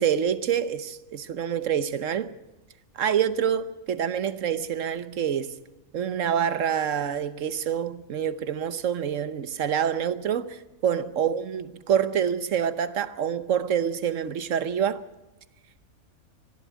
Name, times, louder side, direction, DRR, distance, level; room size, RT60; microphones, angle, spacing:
voice 1, 0.0-2.3 3.0-5.5 5.9-15.0, right 8 dB, 65° right, 1.2 m, -26 dB
24.5 x 11.5 x 9.3 m
omnidirectional pair, 1.5 m